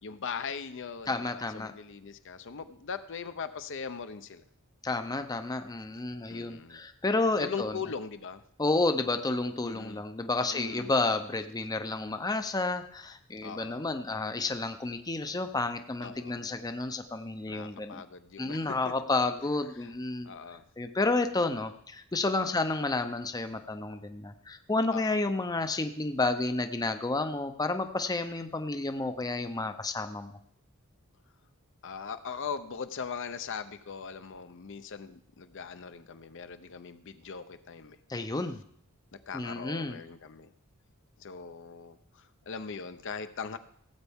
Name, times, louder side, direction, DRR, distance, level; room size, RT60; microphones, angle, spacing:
voice 1, 0.0-4.4 6.3-6.8 7.4-8.4 9.6-10.0 10.5-10.9 13.4-13.8 16.0-16.4 17.5-18.9 19.8-19.9 20.2-20.6 22.4-22.6 24.9-25.2 31.8-38.0 39.1-40.5 41.2-43.6, left 6 dB, 60° left, 10 dB, 0.6 m, -40 dB
voice 2, 1.1-1.7 4.8-7.7 8.6-18.0 18.4-20.3 20.8-30.4 38.1-38.6 39.3-40.0, left 2 dB, 20° left, 8 dB, 0.6 m, -31 dB
17.0 x 8.0 x 3.6 m, 0.66 s
head